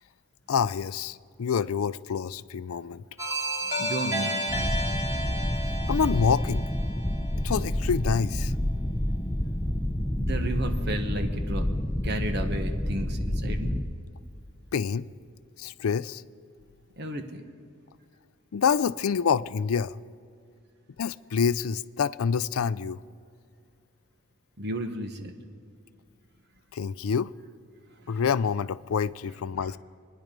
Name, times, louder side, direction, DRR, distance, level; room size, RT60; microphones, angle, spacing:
voice 1, 0.5-3.0 5.9-6.6 7.4-8.5 14.7-15.1 15.6-16.2 18.5-20.0 21.0-23.0 26.7-27.3 28.1-29.8, left 6 dB, 85° left, 0.4 m, -27 dB
sound 1, 3.2-7.9, right 1 dB, 15° right, 2.6 m, -33 dB
voice 2, 3.6-4.9 10.1-11.6 12.0-13.9 17.0-17.4 24.6-25.3 28.0-28.2 29.6-29.8, right 1 dB, 50° right, 1.3 m, -34 dB
sound 2, 4.5-13.8, left 1 dB, 10° left, 0.7 m, -28 dB
26.0 x 10.0 x 5.3 m
head